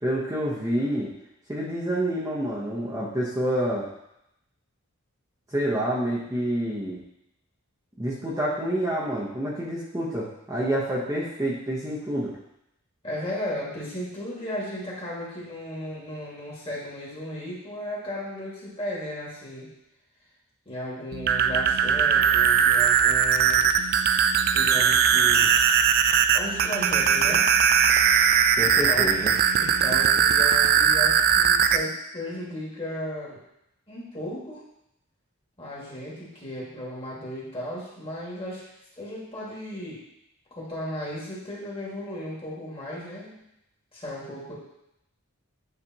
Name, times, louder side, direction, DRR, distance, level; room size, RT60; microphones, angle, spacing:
voice 1, 0.0-1.1 1.5-3.9 5.5-7.0 8.0-12.3 28.6-29.3, right 1 dB, 15° right, -6 dB, 0.9 m, -28 dB
voice 2, 13.0-19.7 20.7-24.0 24.5-25.5 26.3-27.5 28.6-29.2 29.5-33.4 33.9-34.6 35.6-38.6 39.0-40.0 40.6-43.4 43.9-44.5, equal, 25° left, -6 dB, 1.9 m, -35 dB
sound 1, 21.1-31.8, right 8 dB, 45° right, 0.3 m, -20 dB
9.7 x 3.3 x 2.9 m, 0.82 s
head